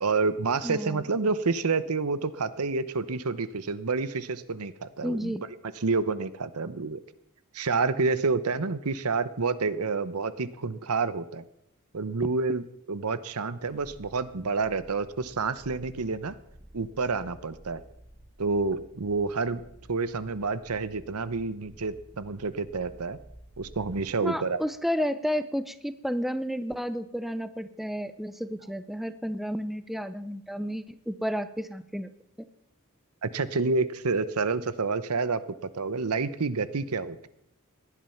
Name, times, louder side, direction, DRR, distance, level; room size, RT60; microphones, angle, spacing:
voice 1, 0.0-5.3 5.8-7.0 7.5-11.4 11.9-16.3 16.7-17.8 18.4-19.6 19.9-23.2 23.6-24.6 33.2-35.4 35.7-37.3, right 4 dB, 85° right, 15 dB, 0.9 m, -28 dB
voice 2, 0.6-1.0 5.0-5.4 24.2-32.1 32.4-32.5, equal, ahead, 13 dB, 0.6 m, -31 dB
sound 1, 13.6-24.2 24.6-24.7, right 1 dB, 30° right, 2.2 m, -52 dB
18.0 x 11.0 x 5.8 m, 0.77 s
head